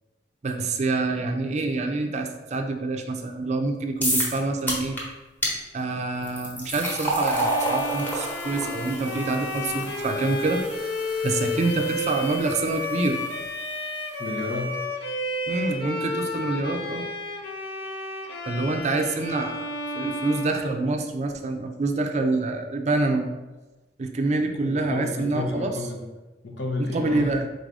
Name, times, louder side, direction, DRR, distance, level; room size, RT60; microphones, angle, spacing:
voice 1, 0.4-5.0 5.7-13.2 15.5-17.1 18.5-19.7 19.9-23.3 24.0-25.7 26.9-27.5, right 2 dB, 40° right, 5 dB, 0.4 m, -26 dB
sound 1, 4.0-4.4 4.7-5.0 5.4-5.5 6.2-13.4, right 1 dB, 10° left, 1.0 m, -30 dB
Bowed string instrument, 7.2-21.3, left 1 dB, 60° left, 0.6 m, -32 dB
voice 2, 14.2-14.8 24.6-26.0 26.4-27.3, left 2 dB, 85° left, 1 dB, 0.8 m, -31 dB
4.0 x 2.6 x 4.7 m, 1.1 s
head